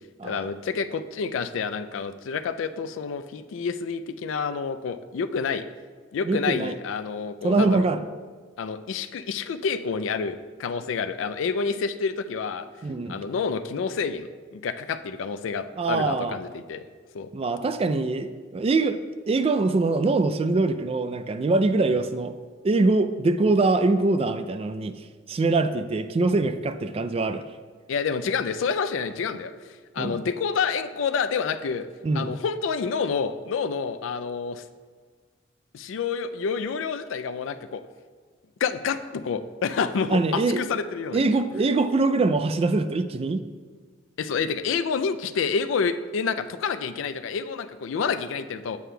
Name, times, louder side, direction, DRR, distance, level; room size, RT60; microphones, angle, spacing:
voice 1, 0.2-5.6 6.1-7.8 8.6-12.7 13.1-16.8 17.1-17.3 21.9-22.0 27.9-31.9 32.1-34.6 35.7-37.8 38.6-41.3 44.2-48.8, left 5 dB, 85° left, 11 dB, 0.4 m, -28 dB
voice 2, 6.2-6.7 7.4-8.0 12.8-13.2 15.8-16.4 17.3-19.0 19.3-22.3 22.6-24.9 25.3-27.4 30.0-30.1 32.0-32.3 40.1-40.6 41.1-43.4, right 3 dB, 30° right, 10 dB, 0.3 m, -23 dB
9.1 x 8.3 x 2.2 m, 1.5 s
head